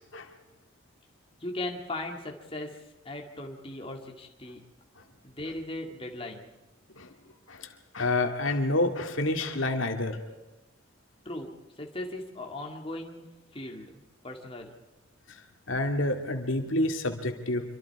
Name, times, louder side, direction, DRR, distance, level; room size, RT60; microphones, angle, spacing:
voice 1, 1.4-4.6 5.2-6.5 11.3-13.2 13.5-14.7, left 1 dB, 25° left, 1 dB, 2.2 m, -38 dB
voice 2, 7.9-10.2 15.7-17.6, left 2 dB, 75° left, 5 dB, 2.2 m, -28 dB
26.0 x 24.5 x 4.8 m, 1.1 s
head